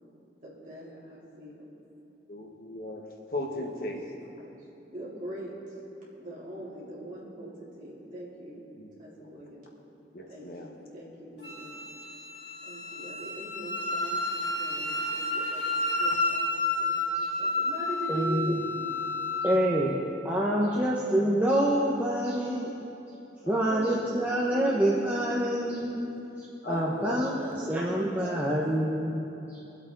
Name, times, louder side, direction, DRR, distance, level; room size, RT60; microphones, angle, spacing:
voice 1, 0.4-1.7 3.5-3.6 4.3-4.6 4.9-5.6 6.2-8.6 9.0-9.7 10.3-11.8 12.7-15.7 16.0-16.5 16.8-18.9 23.7-25.5 26.6-27.1 27.4-28.9, right 1 dB, 45° right, -7 dB, 3.5 m, -41 dB
voice 2, 2.3-4.0 8.8-8.9 9.2-9.3 10.1-10.7 19.7-20.0 20.5-20.8 21.2-21.3 23.4-24.0 26.6-27.6, left 1 dB, 55° left, 0 dB, 1.3 m, -38 dB
Wind instrument woodwind instrument, 11.4-19.6, left 2 dB, 70° left, 3.0 m, -31 dB
voice 3, 18.1-18.6 19.4-19.9 20.2-22.7 23.5-26.1 26.4-29.6, right 1 dB, 10° right, -5 dB, 0.9 m, -27 dB
24.0 x 8.2 x 4.0 m, 2.9 s
head